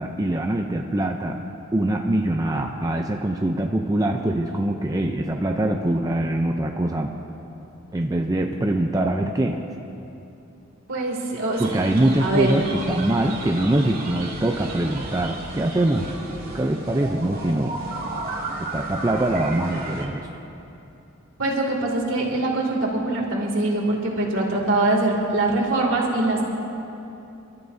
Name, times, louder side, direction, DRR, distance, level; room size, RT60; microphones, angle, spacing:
voice 1, 0.0-1.4 1.7-7.1 7.9-9.6 11.6-16.2 16.5-17.8 18.6-20.3, right 1 dB, 15° right, 2 dB, 0.5 m, -23 dB
voice 2, 10.9-11.6 12.2-12.5 21.4-26.4, right 2 dB, 65° right, -1 dB, 2.5 m, -23 dB
sound 1, 11.5-20.0, right 2 dB, 45° right, 2.1 m, -34 dB
30.0 x 12.5 x 2.7 m, 2.9 s
head